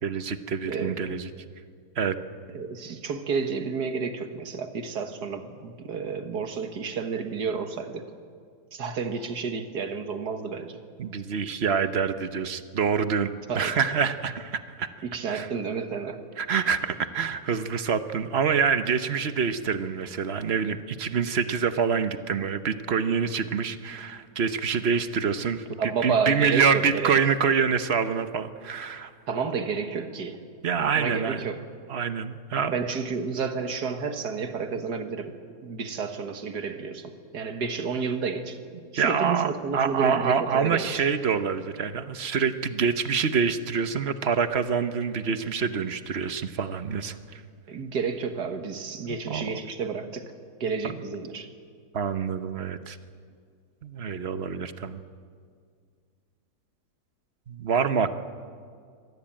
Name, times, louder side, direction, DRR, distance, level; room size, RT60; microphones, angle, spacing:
voice 1, 0.0-1.3 2.0-2.2 11.0-14.9 15.3-15.5 16.4-29.1 30.6-31.4 31.9-32.7 38.9-47.4 49.0-49.5 50.8-51.0 51.9-53.0 53.8-55.0 57.5-58.1, right 6 dB, 45° right, 10 dB, 1.1 m, -26 dB
voice 2, 0.7-1.2 2.5-8.1 8.7-10.8 13.5-13.8 15.0-16.2 25.8-27.2 29.3-30.4 30.9-31.6 32.7-35.4 35.6-38.6 38.9-41.0 47.7-50.2 50.6-51.5, right 5 dB, 75° right, 7 dB, 2.1 m, -30 dB
24.5 x 18.0 x 8.9 m, 2.1 s
omnidirectional pair, 1.8 m